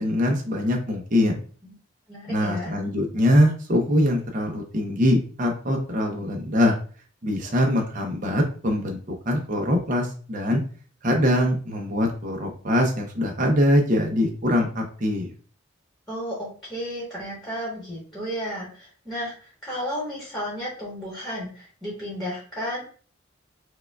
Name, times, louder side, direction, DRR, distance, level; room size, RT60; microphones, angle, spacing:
voice 1, 0.0-1.4 2.3-6.7 7.2-10.6 11.0-15.3, left 1 dB, 40° right, 2 dB, 0.6 m, -23 dB
voice 2, 2.1-2.7 16.1-22.8, equal, ahead, -6 dB, 1.2 m, -33 dB
4.7 x 2.2 x 2.3 m, 0.41 s
head